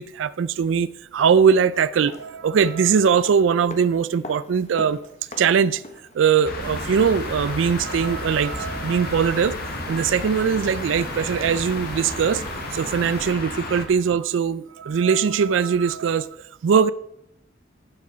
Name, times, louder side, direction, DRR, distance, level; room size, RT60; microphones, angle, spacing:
voice 1, 0.0-5.0 5.4-5.8 6.1-9.6 9.9-12.4 12.7-16.9, right 6 dB, 85° right, 0.4 m, -21 dB
sound 1, 1.9-7.9 8.1-8.2, left 1 dB, 35° left, 1.0 m, -43 dB
sound 2, 6.4-13.8, left 2 dB, 50° left, 1.6 m, -32 dB
sound 3, 6.6-13.4, right 2 dB, 55° right, 0.9 m, -39 dB
11.5 x 6.2 x 5.6 m
head